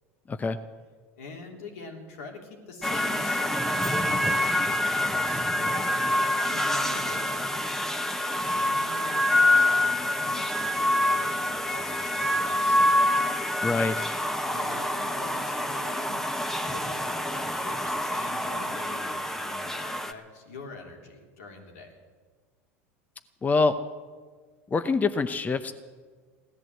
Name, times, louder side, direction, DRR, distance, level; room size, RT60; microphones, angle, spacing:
voice 1, 1.2-3.6 3.9-6.0 6.4-7.7 8.4-12.9 14.4-16.2 16.6-22.0, left 3 dB, 80° left, 2 dB, 3.2 m, -44 dB
sound 1, 2.8-20.1, left 1 dB, 5° left, 1.2 m, -26 dB
voice 2, 13.6-14.0 23.4-23.7 24.7-25.7, left 4 dB, 20° left, 10 dB, 0.8 m, -25 dB
16.5 x 11.0 x 7.8 m, 1.5 s
hypercardioid pair, 90°, 7 cm